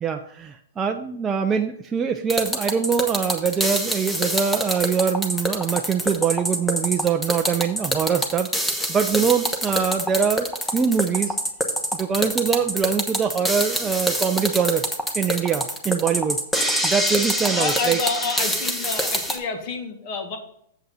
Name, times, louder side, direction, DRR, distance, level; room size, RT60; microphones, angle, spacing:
voice 1, 0.0-11.4 11.9-14.9 15.1-16.4 16.8-18.0, right 6 dB, 15° right, 4 dB, 0.4 m, -23 dB
sound 1, 2.3-19.4, equal, 5° left, 1.1 m, -25 dB
voice 2, 17.4-20.4, left 5 dB, 45° left, 5 dB, 1.7 m, -28 dB
7.7 x 5.5 x 5.4 m, 0.69 s
hypercardioid pair, 135°, 0 cm